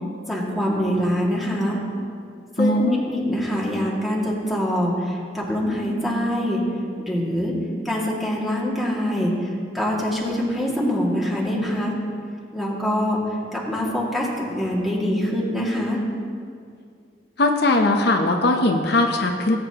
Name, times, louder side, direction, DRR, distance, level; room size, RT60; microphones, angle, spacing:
voice 1, 0.3-1.8 2.6-6.6 7.0-7.5 7.8-11.9 12.5-16.0, equal, ahead, -5 dB, 2.2 m, -24 dB
voice 2, 2.6-3.0 17.4-19.6, left 2 dB, 65° left, 3 dB, 0.8 m, -19 dB
19.0 x 8.6 x 3.0 m, 2.3 s
head